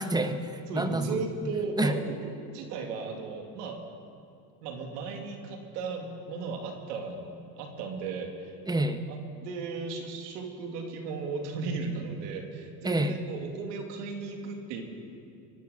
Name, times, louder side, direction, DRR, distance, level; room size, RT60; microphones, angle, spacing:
voice 1, 0.0-1.5 1.8-2.0 8.7-9.0 12.8-13.1, right 1 dB, 10° right, 9 dB, 1.1 m, -28 dB
voice 2, 0.7-3.8 4.6-8.5 9.1-14.8, right 4 dB, 85° right, 3 dB, 2.5 m, -36 dB
24.0 x 11.5 x 5.2 m, 2.5 s
supercardioid pair, 90°, 47 cm